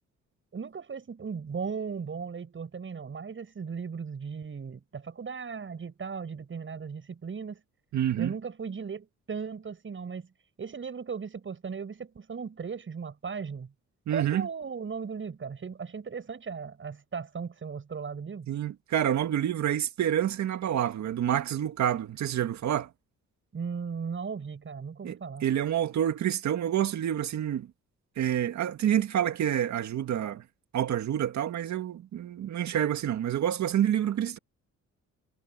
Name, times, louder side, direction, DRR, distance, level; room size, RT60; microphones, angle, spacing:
voice 1, 0.5-7.6 8.2-10.3 10.6-13.7 14.1-18.5 23.5-25.5, right 6 dB, 40° right, 7.6 m, -37 dB
voice 2, 7.9-8.3 14.1-14.5 18.5-22.9 25.0-27.7 28.2-30.4 30.7-34.4, right 10 dB, 65° right, 2.1 m, -28 dB
cardioid pair, 90°, 30 cm